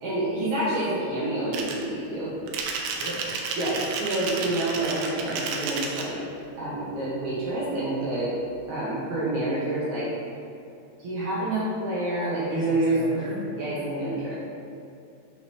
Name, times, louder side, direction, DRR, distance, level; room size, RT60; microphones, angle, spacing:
voice 1, 0.0-2.3 3.6-6.2 6.6-8.4 8.7-10.1 11.0-13.2 13.6-14.4, right 1 dB, 65° right, -8 dB, 2.0 m, -28 dB
sound 1, 1.5-1.8 2.5-6.1, right 5 dB, 90° right, 1.9 m, -31 dB
voice 2, 2.7-3.3 12.5-13.5, left 1 dB, 75° left, -12 dB, 1.0 m, -36 dB
8.3 x 5.1 x 2.8 m, 2.6 s
omnidirectional pair, 4.6 m